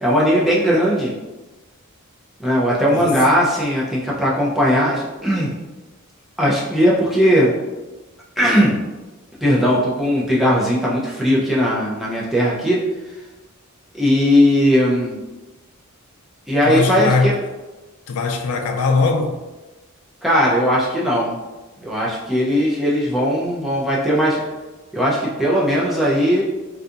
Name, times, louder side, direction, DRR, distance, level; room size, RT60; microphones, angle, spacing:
voice 1, 0.0-1.1 2.4-5.5 6.4-7.5 8.4-8.8 9.4-12.8 13.9-15.2 16.5-17.3 20.2-21.4 21.8-24.4 24.9-26.4, equal, ahead, -5 dB, 0.4 m, -18 dB
voice 2, 16.6-17.4 18.1-19.3, left 4 dB, 90° left, 3 dB, 0.4 m, -20 dB
2.6 x 2.3 x 2.4 m, 1.1 s
head